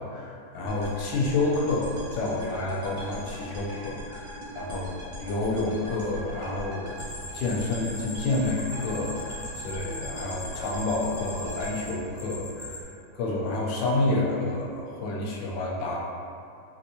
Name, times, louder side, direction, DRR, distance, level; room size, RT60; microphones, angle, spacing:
voice 1, 0.0-7.0 7.3-12.9 13.1-16.0, left 2 dB, 75° left, -3 dB, 1.2 m, -29 dB
sound 1, 0.7-12.8, equal, 60° right, 1.0 m, -40 dB
sound 2, 7.0-12.8, equal, 25° left, 0.4 m, -40 dB
3.5 x 2.5 x 2.7 m, 2.5 s
omnidirectional pair, 2.0 m